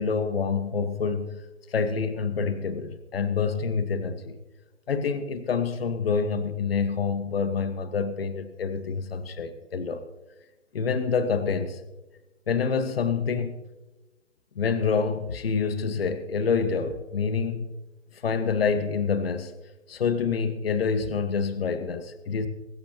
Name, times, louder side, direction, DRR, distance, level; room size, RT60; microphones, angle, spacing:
voice 1, 0.0-1.3 1.7-4.4 4.9-10.0 10.7-11.8 12.5-13.6 14.6-17.7 18.2-19.5 19.9-22.5, left 5 dB, 50° left, 10 dB, 1.4 m, -27 dB
23.0 x 12.0 x 2.9 m, 1.1 s
hypercardioid pair, 160°, 37 cm